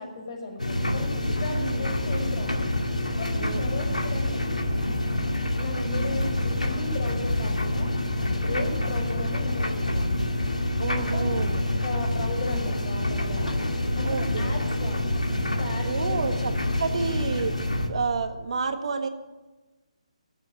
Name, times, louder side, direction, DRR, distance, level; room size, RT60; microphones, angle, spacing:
voice 1, 0.0-2.6 3.2-4.7 5.6-7.9 8.3-10.1 10.8-11.4 11.8-13.5 13.9-15.1 15.6-16.4, left 3 dB, 45° left, 1 dB, 6.0 m, -36 dB
sound 1, 0.6-17.9, left 1 dB, 90° left, 2.2 m, -27 dB
voice 2, 1.5-2.0 3.3-4.2 8.4-8.7 10.8-11.6 14.0-14.5 15.8-17.5 17.9-19.1, right 4 dB, 55° right, 7 dB, 1.5 m, -30 dB
20.0 x 7.8 x 9.0 m, 1.2 s
figure-of-eight pair, 145°, 4 cm